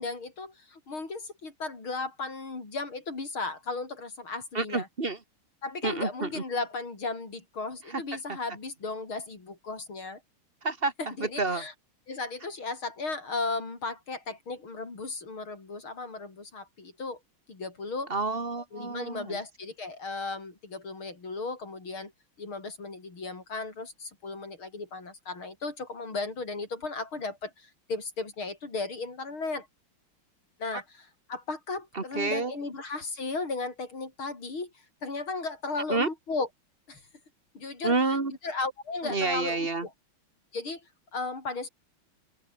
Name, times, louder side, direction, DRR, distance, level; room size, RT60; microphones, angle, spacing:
voice 1, 0.0-4.9 5.6-10.2 11.0-11.7 12.1-17.2 17.5-18.1 18.7-22.1 22.4-29.7 30.6-34.7 35.0-36.5 36.9-37.0 37.5-38.0 38.4-39.9 40.5-41.7, left 3 dB, 70° left, 5.9 m, -35 dB
voice 2, 4.5-5.2 5.8-6.4 7.9-8.0 10.6-10.9 11.2-11.6 18.1-19.4 31.9-32.5 35.9-36.1 37.8-38.3 39.0-39.9, right 3 dB, 25° right, 2.3 m, -29 dB
omnidirectional pair, 2.4 m